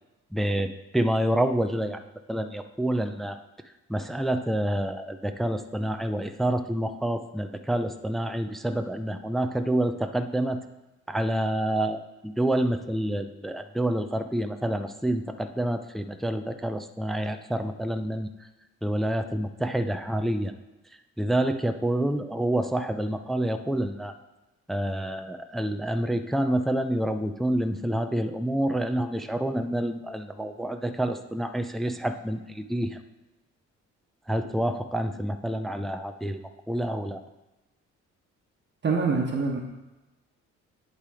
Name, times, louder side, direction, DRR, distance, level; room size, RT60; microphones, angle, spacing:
voice 1, 0.3-2.0 2.3-3.4 3.9-10.6 11.1-18.3 18.8-20.5 21.2-24.1 24.7-33.0 34.3-37.2, right 1 dB, ahead, 8 dB, 0.4 m, -28 dB
voice 2, 38.8-39.6, right 4 dB, 35° right, 1 dB, 1.2 m, -25 dB
10.0 x 3.4 x 4.8 m, 1.0 s
cardioid pair, 90°, 30 cm